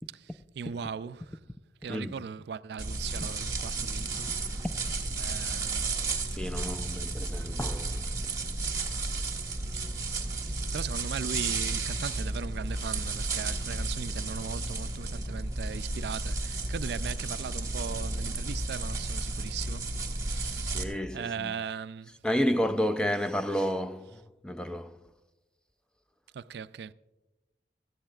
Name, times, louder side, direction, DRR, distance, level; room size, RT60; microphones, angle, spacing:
voice 1, 0.1-1.4 1.8-4.3 5.2-5.9 6.8-7.0 9.7-9.9 10.4-19.9 20.2-20.9 21.1-22.1 26.3-26.9, right 6 dB, 70° right, 0.4 m, -39 dB
voice 2, 1.9-2.2 4.6-4.8 6.3-8.1 20.7-21.6 22.2-25.0, equal, 5° left, 0.4 m, -31 dB
sound 1, 2.8-20.8, right 3 dB, 20° right, 1.2 m, -33 dB
18.0 x 13.5 x 2.4 m
head